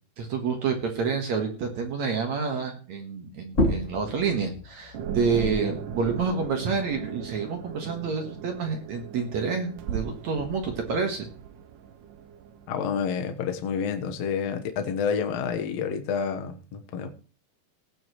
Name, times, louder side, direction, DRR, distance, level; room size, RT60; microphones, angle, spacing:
voice 1, 0.2-11.3, right 5 dB, 60° right, 4 dB, 2.1 m, -28 dB
sound 1, 3.5-8.7 9.1-10.9, left 1 dB, 35° left, 1.3 m, -33 dB
sound 2, 4.9-12.9, right 7 dB, 75° right, 2.0 m, -38 dB
voice 2, 12.7-17.1, left 6 dB, 70° left, 6 dB, 1.5 m, -29 dB
18.0 x 8.8 x 3.1 m, 0.38 s
omnidirectional pair, 4.7 m